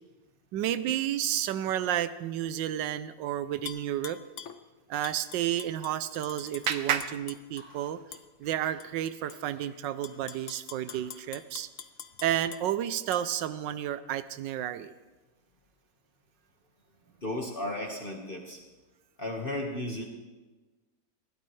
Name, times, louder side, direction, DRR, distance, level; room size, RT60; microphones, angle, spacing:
voice 1, 0.5-4.2 4.9-8.0 8.4-11.7 12.2-14.9, right 11 dB, 85° right, 13 dB, 1.3 m, -31 dB
Tap / Glass, 3.7-4.6 5.0-7.6 8.1-8.2 8.8-9.4 9.8-12.6 13.1-13.2, left 8 dB, 60° left, 0.9 m, -44 dB
Clapping, 5.5-8.2, right 8 dB, 60° right, 1.0 m, -35 dB
sound 1, 6.3-11.4, equal, 5° right, 6.0 m, -58 dB
voice 2, 17.2-18.6 19.2-20.0, left 1 dB, 30° left, 0 dB, 1.6 m, -34 dB
21.0 x 16.0 x 3.2 m, 1.2 s
omnidirectional pair, 1.9 m